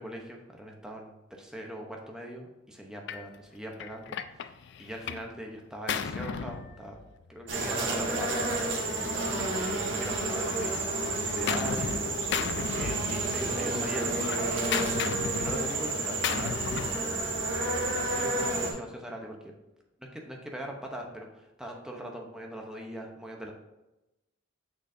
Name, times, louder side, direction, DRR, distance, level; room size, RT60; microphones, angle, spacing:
voice 1, 0.0-4.5 4.8-7.0 7.3-8.5 9.4-12.1 12.8-19.4 20.0-23.5, right 1 dB, 5° right, 0 dB, 0.8 m, -41 dB
Gunshot gunfire, 3.1-3.3 3.8-5.3 5.6-7.3 8.2-10.1 10.4-12.0 12.3-13.5 13.8-17.0, left 7 dB, 60° left, 0.3 m, -35 dB
sound 1, 7.5-18.7, right 2 dB, 65° right, 1.3 m, -30 dB
6.4 x 6.2 x 2.7 m, 0.96 s
head